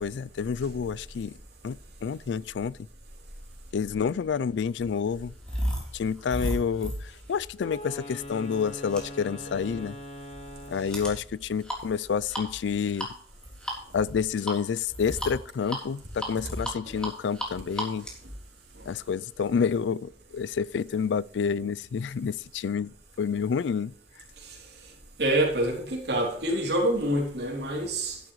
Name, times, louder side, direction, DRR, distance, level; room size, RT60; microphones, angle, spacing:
voice 1, 0.0-1.4 1.6-2.8 3.7-5.3 5.9-10.0 10.7-13.1 13.9-18.1 18.9-23.9, left 6 dB, 80° left, 0.4 m, -29 dB
sound 1, 3.8-19.5, equal, 5° left, 3.5 m, -37 dB
Wind instrument woodwind instrument, 7.5-11.2, left 1 dB, 40° left, 3.7 m, -41 dB
voice 2, 25.2-28.2, right 1 dB, 65° right, 3.3 m, -26 dB
12.0 x 11.5 x 3.2 m
head